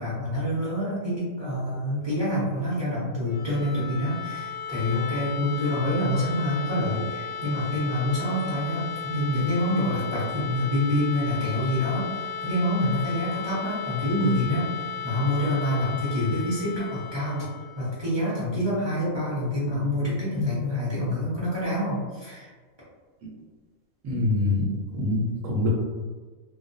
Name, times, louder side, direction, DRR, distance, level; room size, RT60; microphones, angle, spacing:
voice 1, 0.0-17.5 17.7-22.5, left 1 dB, 25° right, -10 dB, 0.6 m, -27 dB
sound 1, 3.1-18.9, left 7 dB, 65° left, 0.7 m, -35 dB
voice 2, 24.0-25.7, left 2 dB, 70° right, -3 dB, 0.9 m, -25 dB
2.2 x 2.2 x 2.5 m, 1.4 s
omnidirectional pair, 1.5 m